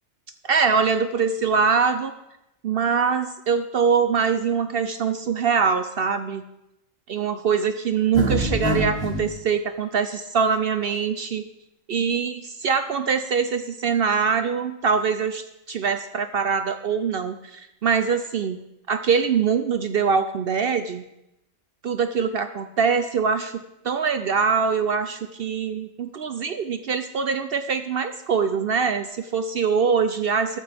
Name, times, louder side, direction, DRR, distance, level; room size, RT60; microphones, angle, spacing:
voice 1, 0.4-2.1 2.6-6.4 7.1-11.4 11.9-18.6 18.9-21.0 21.8-30.6, right 6 dB, 60° right, 9 dB, 0.7 m, -23 dB
sound 1, 8.1-9.3, right 1 dB, 80° right, 3.8 m, -24 dB
13.5 x 12.0 x 3.5 m, 0.88 s
omnidirectional pair, 1.3 m